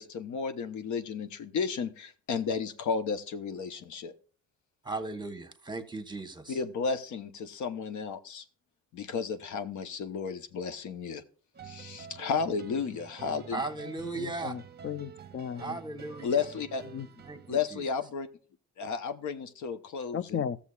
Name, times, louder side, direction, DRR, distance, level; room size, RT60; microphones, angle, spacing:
voice 1, 0.0-4.1 6.5-8.4 8.9-11.2 11.6-13.6 16.2-16.8 17.5-18.3 18.8-20.4, left 5 dB, 70° left, 0.9 m, -33 dB
voice 2, 4.8-6.6 13.5-14.6 15.6-16.4 17.2-17.8, right 3 dB, 15° right, 1.2 m, -37 dB
sound 1, 11.5-17.6, right 6 dB, 35° right, 0.7 m, -48 dB
voice 3, 14.1-15.8 16.9-17.1 20.1-20.6, left 8 dB, 45° left, 0.6 m, -35 dB
14.5 x 7.1 x 2.4 m
cardioid pair, 90°, 30 cm